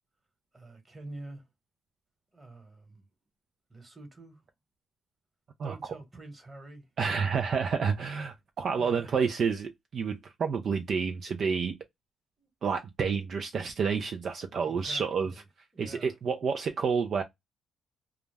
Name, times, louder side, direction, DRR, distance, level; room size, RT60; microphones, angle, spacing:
voice 1, 0.5-1.4 2.3-3.1 3.7-4.4 5.6-6.9 8.8-9.2 12.4-12.5 14.7-15.4 15.7-16.1, right 2 dB, 25° right, 1.2 m, -47 dB
voice 2, 5.6-5.9 7.0-11.8 12.6-15.4 15.8-17.2, right 6 dB, 55° right, 0.4 m, -29 dB
2.2 x 2.1 x 3.2 m
cardioid pair, 90°, 0 cm